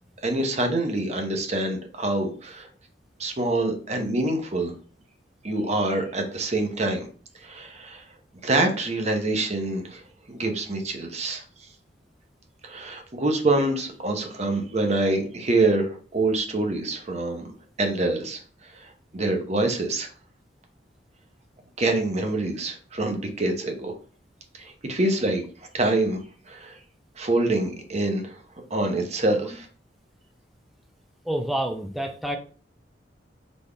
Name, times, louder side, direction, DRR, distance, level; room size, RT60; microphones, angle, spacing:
voice 1, 0.2-2.7 3.2-4.7 5.4-7.1 7.4-8.0 8.4-10.0 10.3-11.4 12.6-17.5 17.8-18.4 18.7-18.9 19.1-20.1 21.8-23.9 24.6-25.4 25.7-26.2 26.5-26.7 27.2-28.4 28.7-29.7, right 2 dB, 40° right, 4 dB, 0.8 m, -25 dB
voice 2, 31.3-32.4, right 1 dB, ahead, 4 dB, 0.4 m, -28 dB
4.1 x 3.5 x 3.4 m, 0.41 s
head